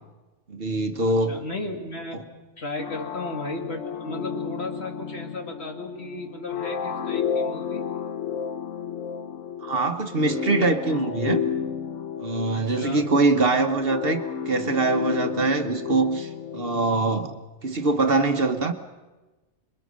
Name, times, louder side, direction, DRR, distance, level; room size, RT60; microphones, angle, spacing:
voice 1, 0.5-1.4 9.6-11.4 12.2-17.3 17.6-18.7, right 3 dB, 50° right, 6 dB, 1.4 m, -23 dB
voice 2, 1.1-2.3 2.6-7.8 12.5-13.1, left 2 dB, 60° left, 3 dB, 2.6 m, -35 dB
sound 1, 2.8-17.3, left 7 dB, 80° left, 1.3 m, -32 dB
26.5 x 22.5 x 6.4 m, 1.2 s
omnidirectional pair, 1.2 m